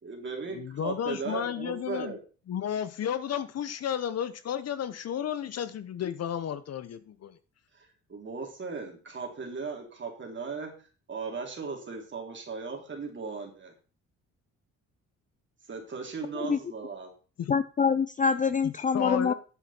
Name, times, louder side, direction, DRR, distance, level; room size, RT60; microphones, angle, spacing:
voice 1, 0.0-2.2 7.8-10.7 11.1-13.7 15.7-17.1, right 4 dB, 40° right, 1 dB, 3.4 m, -37 dB
voice 2, 0.5-2.2 2.5-7.4 17.4-17.6 18.6-19.3, left 9 dB, 55° left, 14 dB, 0.9 m, -33 dB
voice 3, 17.5-19.3, left 6 dB, 25° left, 14 dB, 0.5 m, -25 dB
9.8 x 7.1 x 4.4 m, 0.37 s
cardioid pair, 90°, 30 cm